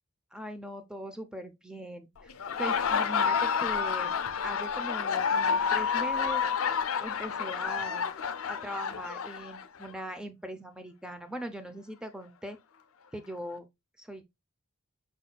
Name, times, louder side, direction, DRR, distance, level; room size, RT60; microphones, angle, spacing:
voice 1, 0.3-2.3 2.6-4.1 4.4-6.4 7.0-8.1 8.5-12.6 13.1-13.7 14.0-14.2, equal, 5° right, 0.5 m, -40 dB
Laughter, 2.3-9.9, left 6 dB, 75° left, 0.5 m, -29 dB
5.1 x 4.1 x 2.2 m
head